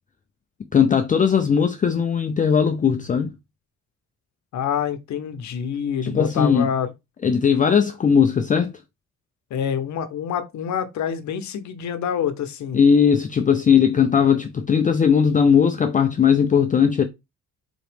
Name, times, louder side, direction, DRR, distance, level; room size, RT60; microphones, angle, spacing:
voice 1, 0.7-3.3 6.0-6.7 7.2-8.7 12.7-17.0, left 7 dB, 25° left, 0.4 m, -18 dB
voice 2, 4.5-6.9 9.5-12.8, left 8 dB, 70° left, 0.8 m, -26 dB
4.0 x 3.0 x 3.2 m
cardioid pair, 90°, 30 cm